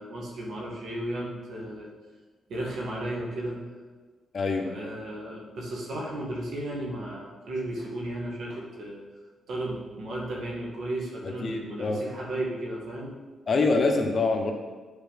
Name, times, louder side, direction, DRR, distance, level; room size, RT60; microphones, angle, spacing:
voice 1, 0.0-1.9 2.5-3.6 4.6-9.0 9.5-13.1, right 1 dB, 75° right, -3 dB, 2.1 m, -34 dB
voice 2, 4.3-4.7 11.4-12.0 13.5-14.5, left 3 dB, 50° left, 3 dB, 1.2 m, -25 dB
8.9 x 4.7 x 5.4 m, 1.3 s
cardioid pair, 70°, 0 cm